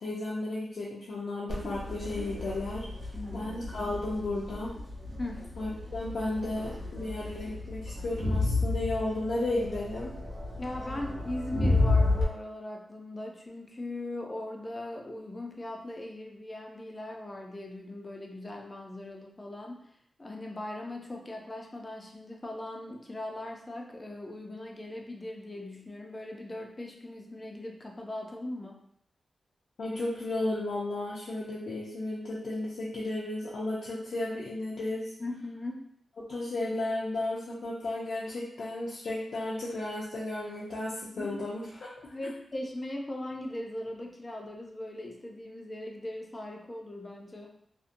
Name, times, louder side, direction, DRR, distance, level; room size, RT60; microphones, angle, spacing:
voice 1, 0.0-2.9 3.3-4.7 5.6-10.1 29.8-35.0 36.3-41.6, left 2 dB, 80° left, -7 dB, 0.5 m, -33 dB
Crowd, 1.5-12.2, left 2 dB, 60° right, 0.8 m, -32 dB
voice 2, 3.1-3.5 5.2-5.5 10.5-19.8 20.2-28.8 35.2-35.9 41.1-41.4 42.1-47.6, left 1 dB, 25° left, 1 dB, 0.4 m, -39 dB
2.7 x 2.1 x 2.5 m, 0.70 s
wide cardioid pair, 135°, 0 cm